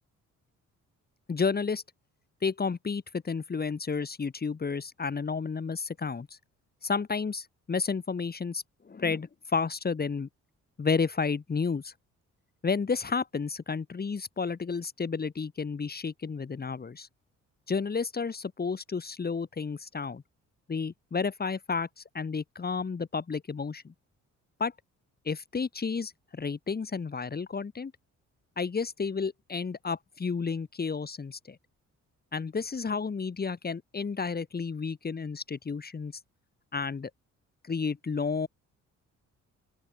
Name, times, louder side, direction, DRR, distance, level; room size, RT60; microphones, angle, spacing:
voice 1, 1.3-1.8 2.4-6.3 6.8-10.3 10.8-11.9 12.6-17.1 17.7-20.2 20.7-23.9 24.6-24.7 25.2-27.9 28.6-31.6 32.3-36.1 36.7-37.1 37.6-38.5, left 5 dB, 30° left, 2.4 m, -31 dB
open air
cardioid pair, 90°, 30 cm